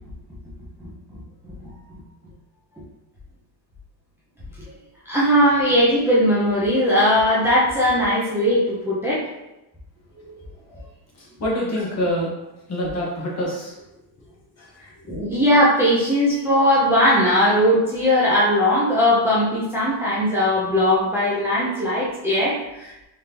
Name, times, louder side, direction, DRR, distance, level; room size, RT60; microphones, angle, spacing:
voice 1, 5.1-9.3 10.2-10.3 15.1-23.0, equal, 5° right, -8 dB, 0.7 m, -19 dB
voice 2, 11.4-12.3 12.7-13.7 14.6-14.7, equal, 35° left, -4 dB, 1.1 m, -25 dB
3.6 x 3.5 x 2.9 m, 0.92 s
cardioid pair, 150°, 48 cm